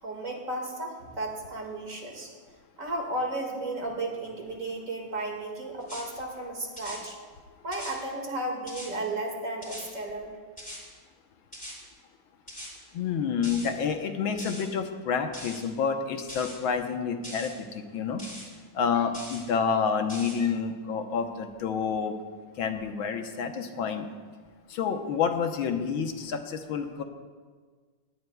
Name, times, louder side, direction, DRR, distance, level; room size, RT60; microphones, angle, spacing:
voice 1, 0.0-2.3 2.8-7.2 7.6-10.4, right 2 dB, 40° right, 1 dB, 2.3 m, -34 dB
sound 1, 5.8-6.0 6.8-7.0 7.7-8.0 8.7-8.9 9.6-9.9 10.6-10.8 11.5-11.8 12.5-12.7 13.4-13.7 14.4-14.6 15.3-15.6 16.3-16.5 17.2-17.5 18.2-18.5 19.1-19.4 20.1-20.4, equal, 5° left, 3.2 m, -41 dB
voice 2, 12.9-18.2 18.7-22.1 22.6-24.1 24.7-27.0, left 6 dB, 75° left, 5 dB, 1.8 m, -29 dB
20.5 x 17.0 x 2.3 m, 1.5 s
omnidirectional pair, 2.3 m